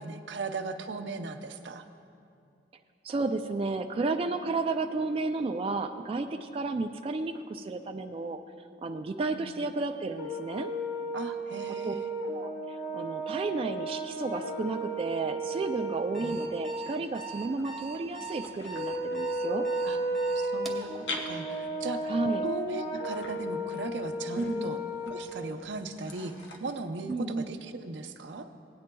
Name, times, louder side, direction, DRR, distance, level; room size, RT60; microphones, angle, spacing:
voice 1, 0.0-1.8 9.3-9.7 11.1-12.1 16.2-16.4 19.8-20.0 20.3-22.1 22.4-26.3 26.6-28.5, right 3 dB, 80° right, 7 dB, 0.6 m, -38 dB
voice 2, 3.0-8.4 8.8-10.7 11.7-11.9 12.3-19.7 22.1-22.5 24.4-24.7 27.1-27.5, right 3 dB, 30° right, 4 dB, 0.3 m, -32 dB
Brass instrument, 10.2-16.6 18.8-25.3, right 1 dB, 60° left, 1.2 m, -34 dB
Alarm, 16.0-20.9, right 5 dB, ahead, 0.9 m, -40 dB
sound 1, 17.3-26.6, left 2 dB, 85° left, 0.9 m, -46 dB
17.5 x 9.5 x 2.2 m, 2.5 s
head